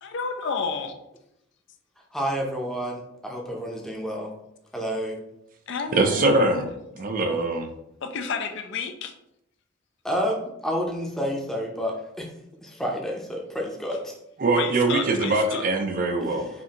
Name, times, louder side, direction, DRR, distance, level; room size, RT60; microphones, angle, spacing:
voice 1, 0.0-0.9 5.7-6.7 8.0-9.1 14.6-15.6, left 5 dB, 60° left, 7 dB, 0.4 m, -31 dB
voice 2, 2.1-4.3 4.7-5.2 10.0-12.3 12.6-14.1, equal, ahead, -1 dB, 0.6 m, -29 dB
voice 3, 5.9-6.7 7.0-7.7 14.4-16.5, right 2 dB, 45° right, 5 dB, 0.4 m, -22 dB
5.1 x 2.7 x 2.8 m, 0.82 s
head